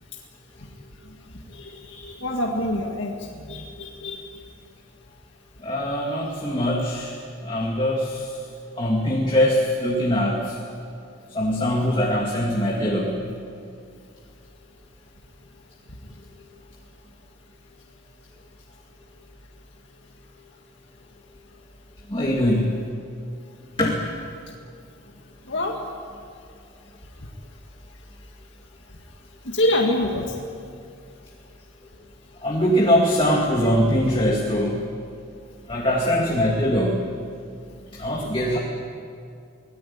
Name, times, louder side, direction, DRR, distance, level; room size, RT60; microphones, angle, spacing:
voice 1, 1.5-3.2 3.5-4.2 25.5-25.8 29.5-30.2, left 1 dB, 60° left, 0 dB, 2.0 m, -25 dB
voice 2, 5.6-7.2 7.4-8.4 8.8-10.6 11.3-13.2 22.1-22.9 23.8-24.0 32.4-34.8 35.7-37.0 37.9-38.6, equal, 25° left, -2 dB, 2.3 m, -22 dB
24.5 x 19.0 x 8.7 m, 2.4 s
head